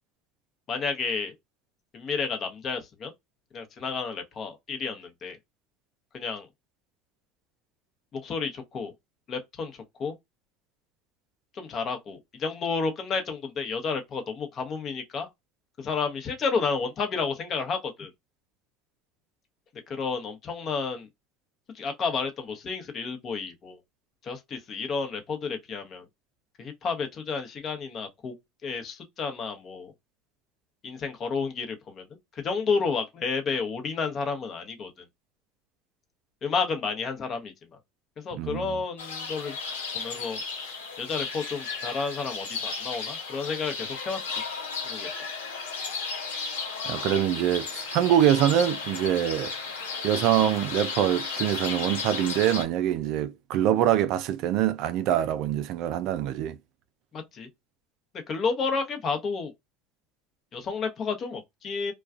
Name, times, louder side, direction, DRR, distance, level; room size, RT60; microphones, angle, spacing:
voice 1, 0.7-1.4 1.9-3.1 3.5-5.4 6.1-6.5 8.1-8.9 9.3-10.1 11.5-15.3 15.8-18.1 19.9-21.1 21.7-23.8 24.2-26.0 26.6-28.4 28.6-29.9 30.8-32.1 32.3-35.1 36.4-37.5 38.2-39.6 39.9-40.7 41.0-44.2 44.8-45.1 57.1-57.5 58.3-59.5 60.5-61.9, left 5 dB, 40° left, 0.9 m, -31 dB
voice 2, 38.4-38.8 46.9-49.5 50.0-56.6, right 11 dB, 60° right, 0.3 m, -24 dB
sound 1, 39.0-52.6, left 4 dB, 90° left, 0.8 m, -34 dB
2.3 x 2.2 x 2.4 m
hypercardioid pair, 85°, 0 cm